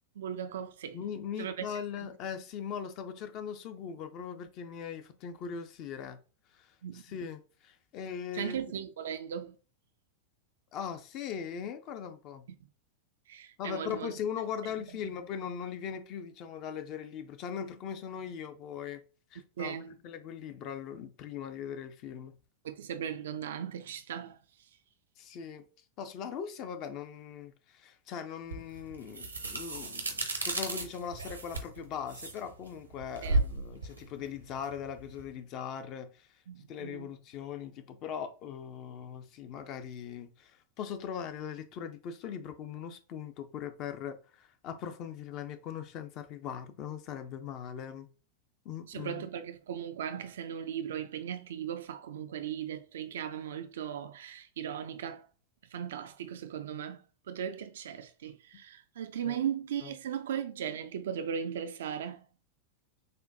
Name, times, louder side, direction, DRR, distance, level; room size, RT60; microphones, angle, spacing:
voice 1, 0.2-1.0 1.4-1.7 2.0-2.1 6.8-7.0 8.3-9.5 13.3-14.1 19.6-20.0 22.6-24.4 33.2-33.4 36.5-37.1 48.9-55.3 55.7-62.2, right 9 dB, 60° right, 0.4 m, -37 dB
voice 2, 0.9-6.2 6.5-8.6 10.7-12.4 13.6-19.0 19.3-19.8 20.0-22.3 25.2-25.6 26.0-36.3 36.7-48.1 48.6-49.2 59.2-59.4 59.8-59.9, left 8 dB, 40° left, 0.6 m, -40 dB
sound 1, 28.5-35.3, right 2 dB, 80° right, 0.8 m, -35 dB
6.5 x 2.2 x 2.6 m
figure-of-eight pair, 90°, 0 cm